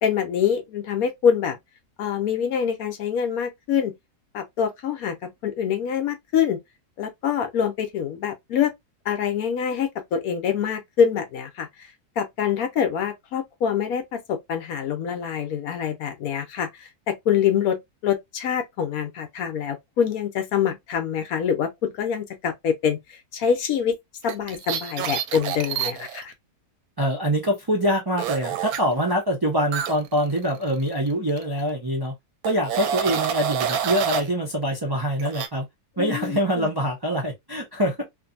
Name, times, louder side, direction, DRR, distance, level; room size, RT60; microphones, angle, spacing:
voice 1, 0.0-1.6 2.0-3.9 4.3-6.6 7.0-8.7 9.1-11.9 12.2-24.0 24.2-26.3 36.0-36.7, left 8 dB, 70° left, 1.0 m, -25 dB
sound 1, 24.2-26.2 28.2-28.8 29.7-31.1 31.4-31.6 32.4-34.3 35.2-35.5, right 9 dB, 75° right, 1.0 m, -28 dB
voice 2, 27.0-32.1 32.4-35.7 36.0-38.0, equal, 35° right, 0.3 m, -24 dB
2.6 x 2.5 x 2.6 m
omnidirectional pair, 1.6 m